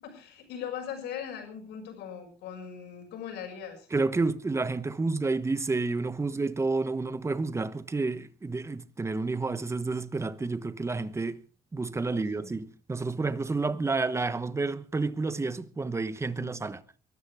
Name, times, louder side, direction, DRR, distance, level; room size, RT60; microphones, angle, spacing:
voice 1, 0.0-3.9 12.1-12.6 16.4-16.5, left 8 dB, 85° left, 6.5 m, -40 dB
voice 2, 3.9-11.4 11.7-16.8, right 3 dB, 15° right, 1.1 m, -30 dB
23.0 x 13.5 x 3.6 m
cardioid pair, 110°, 17 cm